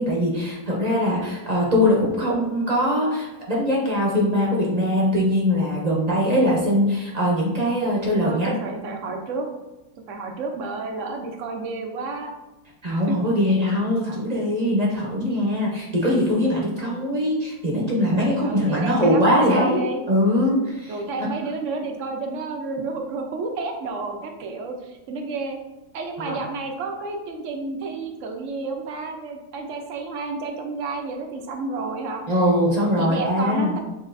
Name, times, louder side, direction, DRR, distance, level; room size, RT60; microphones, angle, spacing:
voice 1, 0.0-8.5 12.8-21.0 26.2-26.4 32.3-33.8, equal, 30° right, -3 dB, 0.8 m, -21 dB
voice 2, 8.2-9.5 10.1-12.3 13.1-13.2 13.5-13.6 16.8-17.1 18.4-20.0 20.9-25.6 25.9-32.2 33.0-33.8, right 3 dB, 60° right, 3 dB, 0.9 m, -31 dB
7.1 x 2.8 x 2.5 m, 1.0 s
omnidirectional pair, 1.7 m